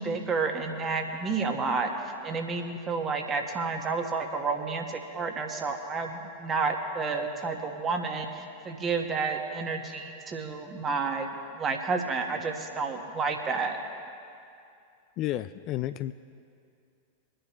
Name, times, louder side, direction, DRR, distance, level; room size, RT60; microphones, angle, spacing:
voice 1, 0.0-1.9 2.2-13.8, right 4 dB, 25° right, 3 dB, 1.6 m, -30 dB
voice 2, 15.2-16.1, left 13 dB, 40° left, 12 dB, 0.3 m, -31 dB
24.0 x 10.0 x 3.1 m, 2.5 s
figure-of-eight pair, 90°, 0 cm